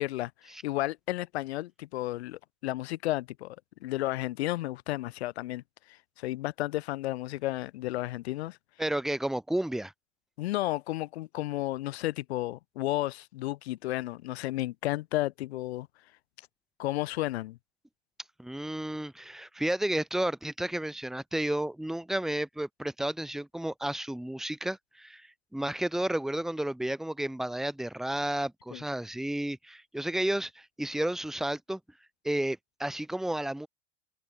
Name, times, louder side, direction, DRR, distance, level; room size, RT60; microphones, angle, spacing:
voice 1, 0.0-3.6 3.8-5.6 6.2-8.6 10.4-15.9 16.8-17.6 28.7-28.8, left 16 dB, 60° left, 1.3 m, -32 dB
voice 2, 8.8-9.9 18.4-31.8 32.2-33.7, right 1 dB, ahead, 0.9 m, -32 dB
figure-of-eight pair, 85°, 36 cm